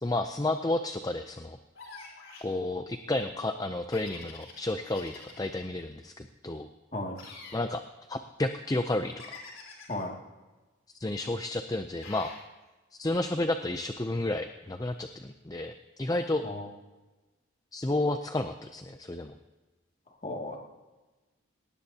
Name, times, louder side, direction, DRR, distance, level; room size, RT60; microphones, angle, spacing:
voice 1, 0.0-1.6 2.4-6.7 7.5-7.8 8.1-9.1 11.0-12.3 13.0-16.4 17.7-19.3, left 2 dB, 20° left, 7 dB, 0.5 m, -31 dB
sound 1, 1.7-2.5 3.9-5.6 7.1-7.6 9.2-10.0 12.0-12.4, left 4 dB, 75° left, 4.0 m, -47 dB
voice 2, 20.2-20.6, left 2 dB, 35° left, 0 dB, 2.3 m, -34 dB
19.5 x 18.5 x 2.9 m, 1.2 s
head